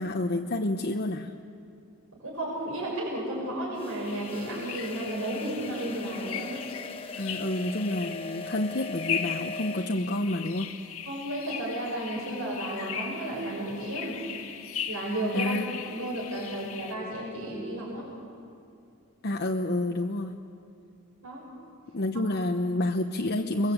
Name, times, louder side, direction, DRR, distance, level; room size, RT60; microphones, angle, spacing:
voice 1, 0.0-1.3 7.2-10.7 15.3-15.6 19.2-20.4 21.9-23.7, left 1 dB, 50° left, 3 dB, 1.0 m, -29 dB
voice 2, 2.2-6.6 11.0-14.2 14.9-18.1 21.2-21.4, right 1 dB, 70° right, -5 dB, 6.6 m, -33 dB
sound 1, 3.7-10.0, left 2 dB, 25° left, 1.1 m, -41 dB
sound 2, 4.0-16.9, left 8 dB, 70° left, 1.7 m, -38 dB
30.0 x 22.0 x 8.2 m, 2.5 s
head